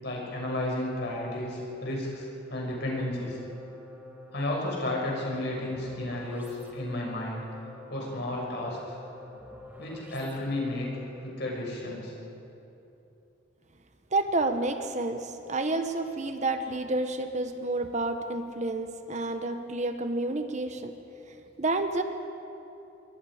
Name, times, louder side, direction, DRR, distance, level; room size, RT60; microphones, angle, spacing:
voice 1, 0.0-3.4 4.3-7.5 7.9-9.0 9.8-10.9 11.2-12.1, left 1 dB, 60° left, -2 dB, 6.4 m, -32 dB
sound 1, 2.5-11.3, left 2 dB, 10° right, 3.3 m, -48 dB
voice 2, 14.1-20.9 21.6-22.0, right 2 dB, 40° right, 7 dB, 1.1 m, -29 dB
26.5 x 22.5 x 5.0 m, 2.9 s
head